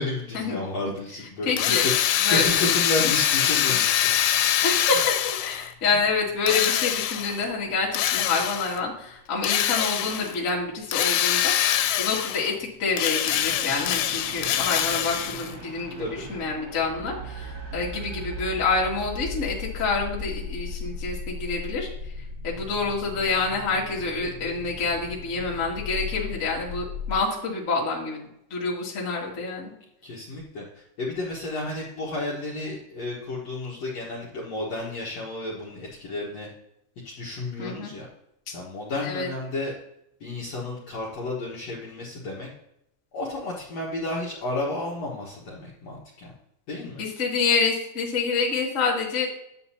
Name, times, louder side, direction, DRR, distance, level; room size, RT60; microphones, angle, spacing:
voice 1, 0.0-4.4 5.9-6.0 16.0-16.3 30.0-36.5 37.0-38.1 38.5-39.7 40.2-42.5 43.1-46.3 46.7-47.0, left 2 dB, 55° left, -4 dB, 2.0 m, -32 dB
voice 2, 1.4-1.9 2.2-2.5 3.7-3.8 4.6-21.9 22.4-29.7 37.6-37.9 38.5-38.6 39.0-39.3 47.0-49.2, left 4 dB, 30° left, -4 dB, 1.5 m, -27 dB
Drill, 1.6-5.7 6.5-7.4 8.0-8.8 9.4-10.4 10.9-12.6 12.9-15.6, left 11 dB, 85° left, 2.6 m, -24 dB
sound 1, 13.2-27.2, left 2 dB, 80° right, 0.8 m, -37 dB
11.0 x 8.0 x 2.8 m, 0.80 s
omnidirectional pair, 4.7 m